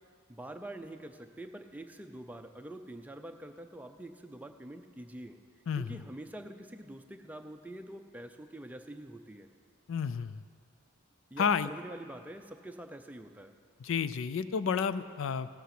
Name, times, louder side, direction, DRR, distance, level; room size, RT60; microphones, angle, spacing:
voice 1, 0.3-5.4 5.8-9.5 11.3-13.5, right 1 dB, 5° right, 5 dB, 0.5 m, -45 dB
voice 2, 5.7-6.0 9.9-10.4 11.4-11.7 13.8-15.5, left 6 dB, 60° left, 14 dB, 0.4 m, -31 dB
16.5 x 8.4 x 5.9 m, 2.2 s
head